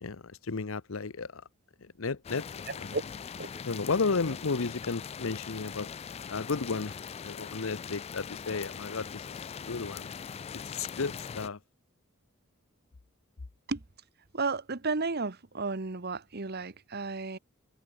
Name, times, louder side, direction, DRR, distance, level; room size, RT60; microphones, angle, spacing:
voice 1, 0.0-1.4 1.8-2.5 2.8-3.0 3.6-5.9 6.3-7.0 7.2-10.1 10.5-11.6, left 4 dB, 75° left, 0.8 m, -33 dB
sound 1, 2.2-11.5, left 7 dB, 30° left, 0.3 m, -41 dB
voice 2, 2.7-3.0 3.4-3.5 13.7-13.8 14.3-17.4, right 3 dB, 50° right, 1.2 m, -33 dB
head